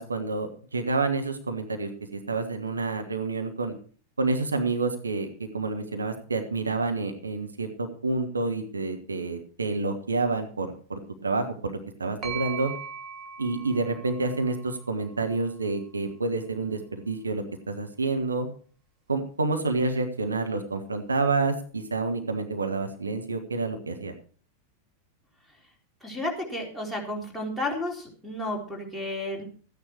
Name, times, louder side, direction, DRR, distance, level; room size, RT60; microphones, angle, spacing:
voice 1, 0.0-3.7 4.2-5.3 5.5-12.7 13.4-18.5 19.1-24.1, right 3 dB, 75° right, 5 dB, 1.4 m, -28 dB
sound 1, 12.2-16.0, right 7 dB, 35° right, 2.6 m, -40 dB
voice 2, 26.0-29.4, left 1 dB, 5° right, 0 dB, 3.9 m, -32 dB
14.0 x 9.6 x 4.6 m, 0.43 s
figure-of-eight pair, 90°, 0 cm